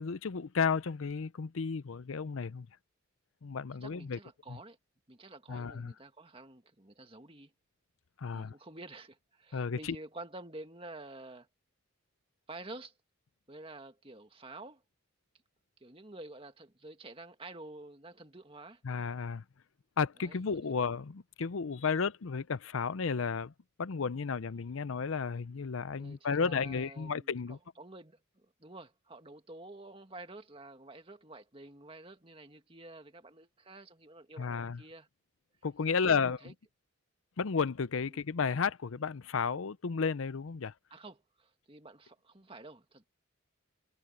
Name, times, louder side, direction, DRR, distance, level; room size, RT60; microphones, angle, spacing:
voice 1, 0.0-2.7 3.4-4.2 4.5-4.6 5.5-5.9 8.2-8.5 9.5-10.0 18.8-19.4 20.0-23.5 23.8-27.6 34.4-34.8 35.6-36.5 37.4-40.7, left 5 dB, 75° left, 0.6 m, -33 dB
voice 2, 3.8-4.8 5.1-7.5 8.3-11.5 12.5-12.9 13.5-14.8 15.8-18.8 20.2-20.8 26.0-35.1 36.0-36.5 38.1-38.2 40.9-43.1, right 2 dB, 25° right, 2.0 m, -49 dB
head